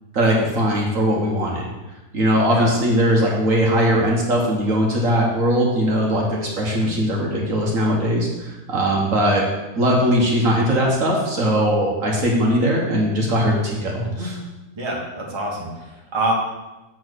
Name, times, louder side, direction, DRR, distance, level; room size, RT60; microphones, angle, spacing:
voice 1, 0.1-1.7 2.1-9.4 9.8-14.4, equal, 50° right, -2 dB, 1.5 m, -20 dB
voice 2, 14.7-16.3, right 2 dB, 15° right, -2 dB, 1.3 m, -26 dB
7.4 x 4.5 x 6.3 m, 1.1 s
omnidirectional pair, 1.8 m